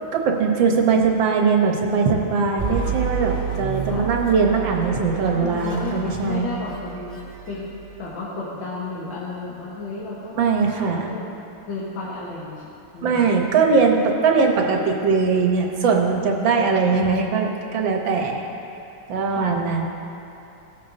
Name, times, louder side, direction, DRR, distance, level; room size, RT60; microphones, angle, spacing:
voice 1, 0.1-6.5 10.4-11.1 13.0-18.4 19.1-19.9, right 5 dB, 80° right, 1 dB, 1.7 m, -20 dB
sound 1, 2.6-8.1, right 6 dB, 5° right, 1.8 m, -30 dB
voice 2, 5.4-7.2 7.5-11.3 11.7-12.6 12.9-13.2 16.5-16.7 19.3-19.6, left 3 dB, 70° left, -7 dB, 2.1 m, -33 dB
17.5 x 8.8 x 2.7 m, 2.9 s
omnidirectional pair, 2.1 m